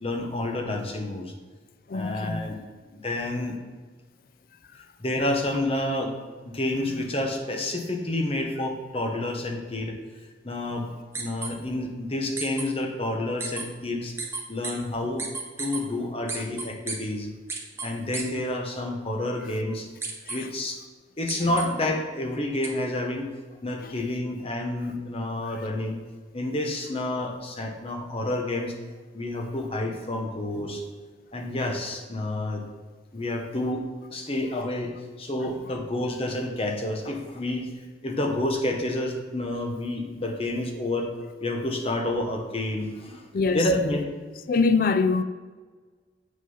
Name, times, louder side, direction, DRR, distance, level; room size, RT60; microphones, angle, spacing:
voice 1, 0.0-1.3 1.9-2.6 2.9-3.6 5.0-6.2 6.4-10.0 10.4-10.9 11.1-14.1 14.5-15.3 15.6-17.3 17.8-19.9 20.3-20.7 21.2-23.3 23.6-26.0 26.3-28.7 29.1-30.8 31.3-32.6 33.1-37.7 38.0-41.1 41.4-43.2 43.5-44.0, left 1 dB, 30° left, 1.1 m, -29 dB
voice 2, 1.9-2.6 4.7-4.8 20.3-20.5 23.8-23.9 25.5-25.6 35.4-35.5 43.3-43.7 44.5-45.2, left 4 dB, 50° left, 0.4 m, -24 dB
sound 1, 11.1-11.5 12.4-12.6 13.4-13.6 14.2-14.7 15.2-15.8 16.3-16.9 17.5-17.9 18.1-18.2 20.0-20.4 21.3-21.6 22.6-22.7, right 4 dB, 15° right, 0.9 m, -32 dB
7.7 x 6.4 x 5.6 m
head